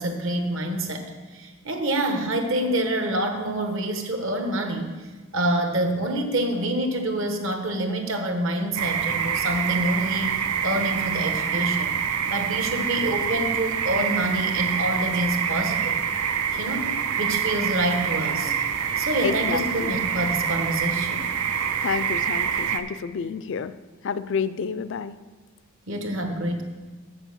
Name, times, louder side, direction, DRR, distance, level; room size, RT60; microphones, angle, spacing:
voice 1, 0.0-10.4 10.6-12.0 12.3-16.0 16.5-18.5 19.0-21.3 25.9-26.6, right 1 dB, 60° right, 5 dB, 1.2 m, -27 dB
sound 1, 8.8-22.8, right 8 dB, 80° right, 0.6 m, -26 dB
voice 2, 19.2-19.9 21.8-23.7 24.0-25.2, left 6 dB, 55° left, 14 dB, 0.4 m, -29 dB
7.4 x 7.3 x 7.1 m, 1.3 s
head